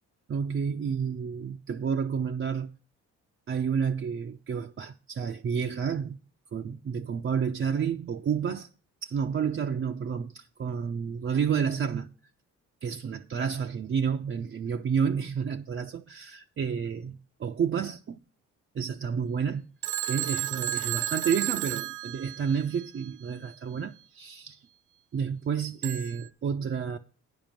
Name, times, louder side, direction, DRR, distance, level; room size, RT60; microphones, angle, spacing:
voice 1, 0.3-2.7 3.5-6.2 6.5-8.7 9.0-12.1 12.8-18.2 18.7-19.6 20.1-24.6 25.1-27.0, right 7 dB, 40° right, 0.7 m, -30 dB
Telephone, 19.8-22.8 25.8-26.3, right 13 dB, 85° right, 0.6 m, -32 dB
10.0 x 5.4 x 7.4 m
cardioid pair, 90°, 30 cm